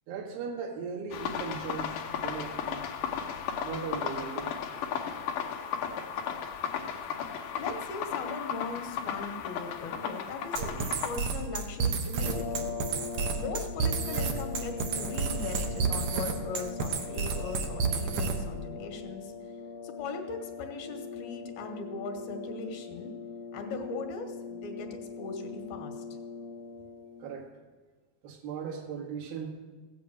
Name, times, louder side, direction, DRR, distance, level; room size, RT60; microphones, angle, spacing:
voice 1, 0.1-2.8 3.6-4.5 27.2-27.5 28.2-29.5, right 6 dB, 80° right, 1 dB, 3.5 m, -38 dB
sound 1, 1.1-11.1, left 7 dB, 70° left, 2.5 m, -35 dB
voice 2, 7.6-12.8 13.4-19.3 19.8-23.1 23.5-24.9 25.2-26.0, left 4 dB, 90° left, 5 dB, 3.4 m, -39 dB
sound 2, 10.6-18.5, right 5 dB, 60° right, 2.1 m, -30 dB
sound 3, 12.1-27.3, left 5 dB, 50° left, 2.6 m, -41 dB
16.0 x 8.5 x 7.7 m, 1.3 s
omnidirectional pair, 4.1 m